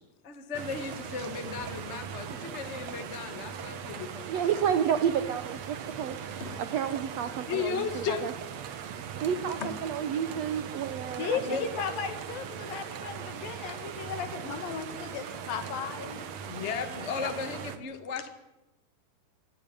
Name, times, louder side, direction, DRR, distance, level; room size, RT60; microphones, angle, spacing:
voice 1, 0.2-4.3 6.0-6.1 6.4-6.6 7.2-8.5 9.6-9.7 10.3-10.4 11.4-11.7 16.5-18.3, left 6 dB, 45° left, 8 dB, 0.8 m, -35 dB
sound 1, 0.5-17.8, right 8 dB, 60° right, 2.0 m, -40 dB
voice 2, 4.3-6.2 6.7-8.3 9.2-11.6, right 8 dB, 75° right, 10 dB, 1.5 m, -30 dB
voice 3, 11.2-16.3 17.2-17.3, left 6 dB, 75° left, 8 dB, 3.7 m, -35 dB
25.5 x 14.5 x 9.7 m, 1.1 s
omnidirectional pair, 4.1 m